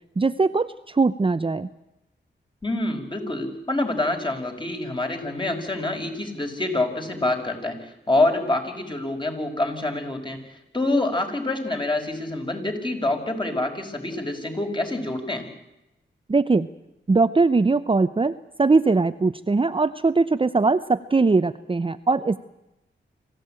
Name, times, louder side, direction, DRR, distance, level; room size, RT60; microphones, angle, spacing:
voice 1, 0.2-1.7 16.3-16.7 17.1-22.4, right 3 dB, 25° right, 12 dB, 0.7 m, -21 dB
voice 2, 2.6-10.4 10.7-15.4, left 2 dB, 25° left, 4 dB, 5.6 m, -26 dB
26.0 x 15.0 x 8.9 m, 0.91 s
cardioid pair, 65°, 20 cm